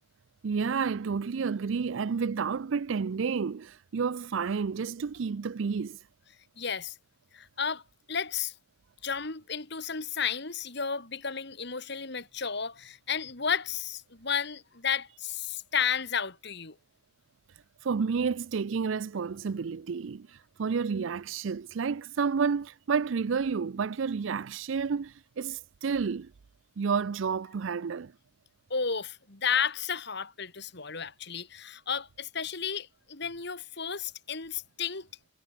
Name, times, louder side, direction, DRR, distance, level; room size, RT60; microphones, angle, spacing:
voice 1, 0.4-6.0 17.8-20.3 20.6-26.3 26.8-28.1, right 5 dB, 70° right, 0.5 m, -30 dB
voice 2, 6.6-6.9 7.3-7.8 8.1-8.5 9.0-16.7 28.7-35.1, left 7 dB, 55° left, 2.8 m, -32 dB
head